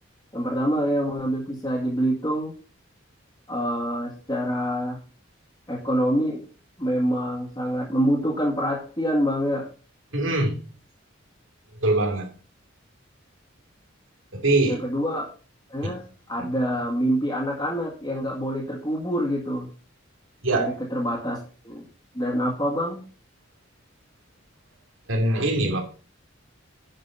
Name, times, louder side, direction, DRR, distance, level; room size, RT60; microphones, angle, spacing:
voice 1, 0.3-2.5 3.5-5.0 5.7-6.5 6.8-9.7 14.6-15.3 15.7-19.7 20.5-21.9 22.1-23.0, equal, 20° left, 1.8 m, -26 dB
voice 2, 10.1-10.6 11.8-12.3 14.3-14.8 20.4-20.7 25.1-25.8, right 2 dB, 75° right, 2.7 m, -22 dB
10.0 x 5.2 x 5.5 m
head